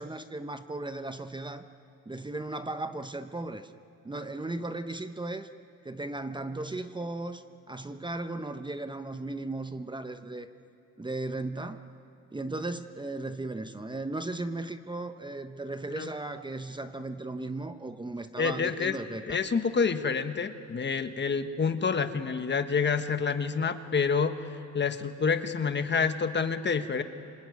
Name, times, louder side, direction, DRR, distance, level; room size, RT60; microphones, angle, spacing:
voice 1, 0.0-1.6 2.1-3.7 4.0-5.5 5.8-10.5 11.0-11.8 12.3-19.4, right 2 dB, 15° right, 9 dB, 0.9 m, -36 dB
voice 2, 18.4-18.9 19.3-24.3 24.7-27.0, left 5 dB, 35° left, 9 dB, 1.4 m, -28 dB
26.5 x 20.5 x 9.5 m, 2.5 s
cardioid pair, 90°, 30 cm